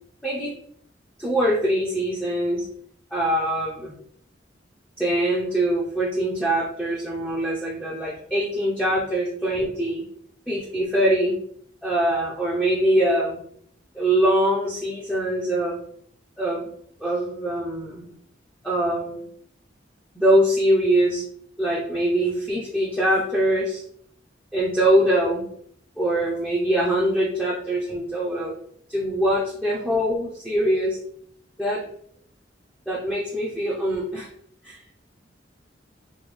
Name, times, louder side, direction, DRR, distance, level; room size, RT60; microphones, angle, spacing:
voice 1, 0.2-0.5 1.2-2.7 3.1-3.9 5.0-10.0 10.5-11.4 11.8-13.4 13.9-15.8 16.4-16.7 17.0-18.1 18.6-19.2 20.2-21.2 21.6-23.8 24.5-25.5 26.0-28.5 28.9-31.0 31.6-31.8 32.9-34.3 34.6-34.8, right 1 dB, 5° left, -7 dB, 0.4 m, -23 dB
3.5 x 2.1 x 3.1 m, 0.65 s
head